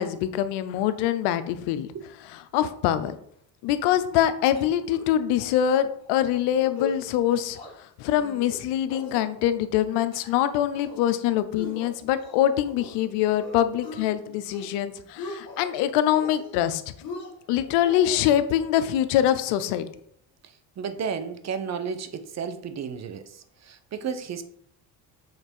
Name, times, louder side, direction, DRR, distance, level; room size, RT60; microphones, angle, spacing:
voice 1, 0.0-1.9 2.5-3.2 3.6-7.6 8.0-16.8 17.5-19.8, left 11 dB, 85° left, 12 dB, 0.6 m, -24 dB
sound 1, 4.5-5.1 5.4-5.5 5.8-6.1 6.5-7.0 7.3-7.7 8.1-8.6 8.9-9.6 9.9-10.4 10.7-11.1 11.6-13.1 13.4-14.0 14.4-14.8 15.0-15.7 16.1-16.7 17.0-18.3, left 4 dB, 60° left, 1.9 m, -39 dB
voice 2, 20.4-24.4, right 6 dB, 40° right, 10 dB, 0.7 m, -33 dB
6.6 x 3.3 x 4.5 m, 0.69 s
supercardioid pair, 80°, 41 cm